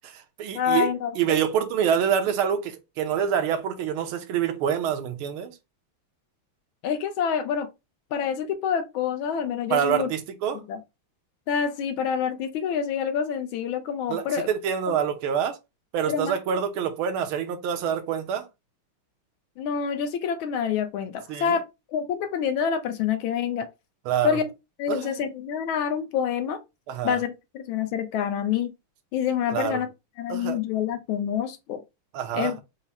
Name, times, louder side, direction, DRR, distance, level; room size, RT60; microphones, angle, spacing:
voice 1, 0.0-5.6 9.7-10.6 14.1-15.6 15.9-18.5 21.3-21.6 24.1-24.4 24.9-25.2 26.9-27.2 29.5-29.8 30.3-30.6 32.1-32.6, right 8 dB, 85° right, 1.6 m, -26 dB
voice 2, 0.5-1.2 6.8-7.7 8.1-10.1 10.5-10.8 11.5-14.5 16.1-16.4 19.6-21.6 21.9-23.7 24.2-24.5 24.8-26.6 27.0-28.7 29.1-29.9 30.2-31.8 32.3-32.6, left 7 dB, 75° left, 1.4 m, -27 dB
4.8 x 2.0 x 4.1 m
omnidirectional pair, 2.3 m